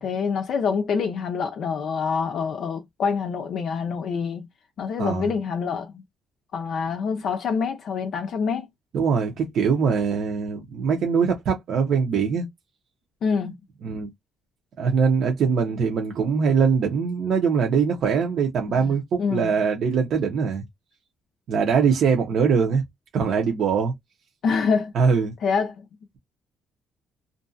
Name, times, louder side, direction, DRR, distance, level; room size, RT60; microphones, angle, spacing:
voice 1, 0.0-4.5 4.8-6.0 6.5-8.7 13.2-13.6 18.7-18.9 19.2-19.5 24.4-24.9 25.4-25.7, left 5 dB, 60° left, 0.4 m, -26 dB
voice 2, 5.0-5.3 8.9-12.4 13.8-14.1 14.8-20.6 21.5-22.8 23.1-23.9 24.9-25.3, right 6 dB, 60° right, 0.7 m, -22 dB
2.5 x 2.2 x 2.5 m
cardioid pair, 115°, 0 cm